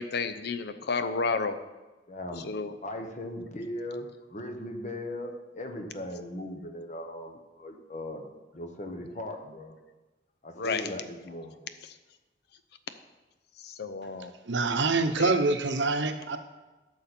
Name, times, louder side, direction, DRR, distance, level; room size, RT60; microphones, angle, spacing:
voice 1, 0.0-1.6 2.4-2.7 10.6-10.9 13.6-14.3 15.2-15.3, left 4 dB, 60° left, 9 dB, 0.6 m, -31 dB
voice 2, 2.1-2.5 2.8-8.3 8.5-9.8 10.4-11.7, left 1 dB, 40° left, 4 dB, 1.2 m, -38 dB
voice 3, 14.4-16.4, right 3 dB, 75° right, 8 dB, 0.8 m, -25 dB
12.5 x 6.6 x 4.4 m, 1.1 s
head